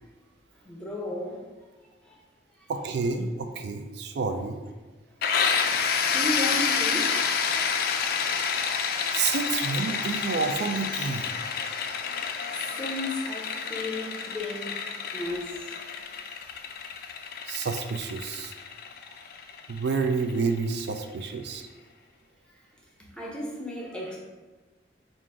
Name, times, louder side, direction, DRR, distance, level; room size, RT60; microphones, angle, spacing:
voice 1, 0.6-1.4 2.1-2.2 6.1-7.1 12.6-14.8 15.1-15.7 19.1-19.2 23.0-24.2, left 1 dB, 5° left, -3 dB, 0.6 m, -34 dB
voice 2, 2.7-4.6 9.1-11.3 17.5-18.5 19.7-21.7, right 4 dB, 65° right, 5 dB, 0.3 m, -29 dB
sound 1, 5.2-20.8, left 6 dB, 50° left, 0.3 m, -29 dB
3.7 x 2.5 x 4.6 m, 1.3 s
head